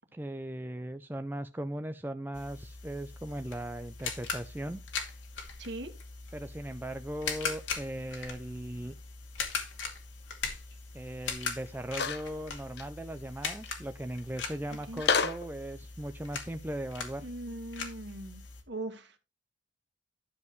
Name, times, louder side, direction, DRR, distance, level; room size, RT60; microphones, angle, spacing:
voice 1, 0.1-4.8 6.3-8.9 10.9-17.3, right 1 dB, 10° right, 0.4 m, -38 dB
sound 1, 2.3-18.6, left 5 dB, 80° left, 2.4 m, -40 dB
voice 2, 5.6-5.9 14.9-15.0 17.2-19.2, right 2 dB, 65° right, 1.7 m, -40 dB
sound 2, 11.9-12.2 12.8-12.9 15.0-15.5, left 5 dB, 60° left, 0.9 m, -28 dB
12.0 x 7.1 x 3.2 m
head